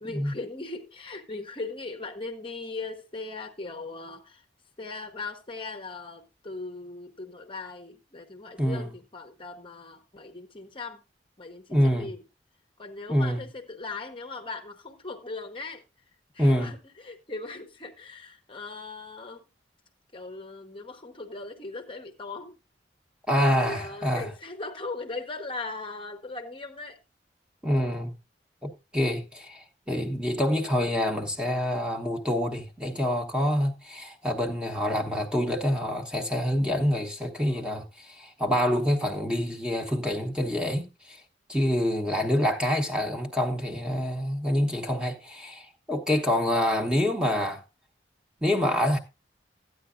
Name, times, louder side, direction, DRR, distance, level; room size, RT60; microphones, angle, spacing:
voice 1, 0.0-4.4 4.8-11.0 11.4-12.2 12.8-15.8 16.3-19.5 20.1-22.6 23.4-27.0 41.6-41.9, left 3 dB, 30° left, 0.8 m, -39 dB
voice 2, 11.7-12.1 13.1-13.4 16.4-16.7 23.3-24.3 27.6-28.1 28.6-41.2 41.5-47.6 48.4-49.0, equal, 5° right, 1.0 m, -26 dB
13.5 x 9.4 x 2.5 m
head